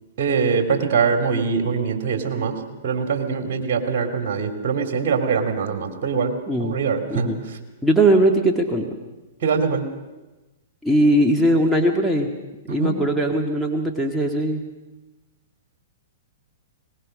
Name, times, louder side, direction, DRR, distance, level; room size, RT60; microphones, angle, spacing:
voice 1, 0.2-2.6 2.8-6.3 6.6-7.6 9.4-9.8 12.7-13.0, right 5 dB, 55° right, 6 dB, 2.6 m, -23 dB
voice 2, 6.5-6.8 7.1-7.4 7.8-8.9 10.8-12.3 12.7-14.6, right 1 dB, ahead, 0 dB, 1.8 m, -19 dB
22.0 x 19.5 x 6.4 m, 1.1 s
hypercardioid pair, 115°, 0 cm